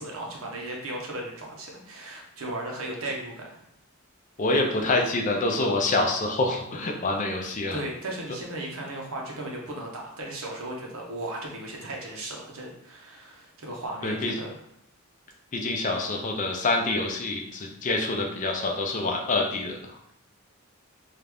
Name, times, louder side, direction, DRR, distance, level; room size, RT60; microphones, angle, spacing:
voice 1, 0.0-3.6 7.7-14.5, right 1 dB, 70° right, -1 dB, 0.9 m, -36 dB
voice 2, 4.4-7.8 14.0-14.3 15.5-19.8, left 2 dB, 35° left, 2 dB, 0.4 m, -26 dB
3.2 x 2.5 x 3.3 m, 0.74 s
head